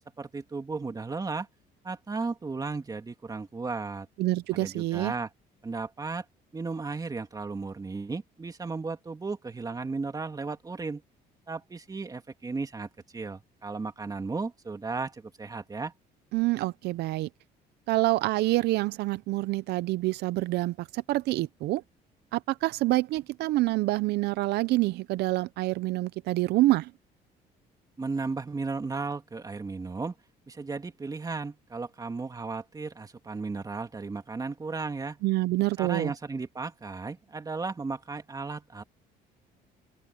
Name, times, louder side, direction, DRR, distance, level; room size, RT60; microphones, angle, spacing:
voice 1, 0.2-1.5 1.8-4.1 4.5-5.3 5.6-6.2 6.5-11.0 11.5-15.9 28.0-30.1 30.5-35.2 35.8-38.8, right 4 dB, 20° right, 2.6 m, -35 dB
voice 2, 4.2-5.1 16.3-17.3 17.9-21.8 22.3-26.9 35.2-36.1, right 18 dB, 75° right, 0.5 m, -27 dB
open air
cardioid pair, 110°, 17 cm